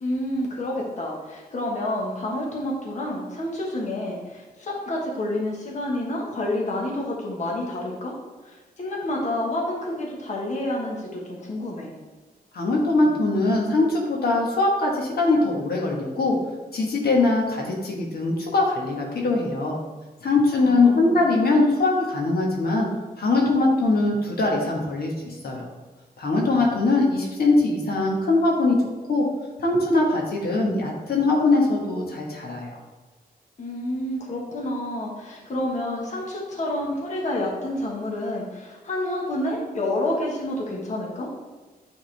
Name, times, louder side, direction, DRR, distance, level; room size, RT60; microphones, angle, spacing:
voice 1, 0.0-8.1 8.4-11.9 20.6-21.2 33.6-41.3, left 1 dB, 45° left, -2 dB, 1.2 m, -29 dB
voice 2, 12.5-16.4 16.7-19.8 20.2-22.9 23.2-25.7 26.2-28.8 29.1-29.2 29.6-32.8, left 2 dB, 70° left, -1 dB, 1.2 m, -22 dB
9.0 x 3.6 x 3.3 m, 1.3 s
wide cardioid pair, 120°, 16 cm